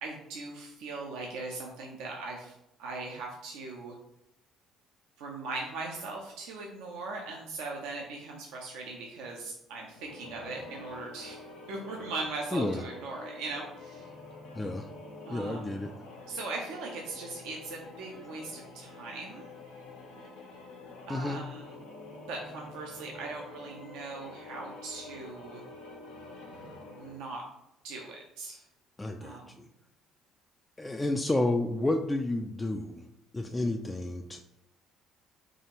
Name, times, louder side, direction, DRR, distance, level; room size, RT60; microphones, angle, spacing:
voice 1, 0.0-2.5 2.8-4.0 5.2-14.1 15.3-15.8 16.3-19.5 21.1-21.8 22.3-25.6 26.9-27.4 27.8-28.6 29.2-29.5, right 3 dB, 75° right, -1 dB, 0.6 m, -39 dB
sound 1, 9.8-27.3, left 3 dB, 80° left, 0.9 m, -47 dB
voice 2, 12.5-12.8 14.6-14.9 15.3-15.9 21.1-21.4 29.0-29.6 30.8-33.0 33.3-34.4, left 2 dB, 20° left, 3 dB, 0.4 m, -31 dB
4.8 x 2.4 x 2.9 m, 0.86 s
hypercardioid pair, 55°, 0 cm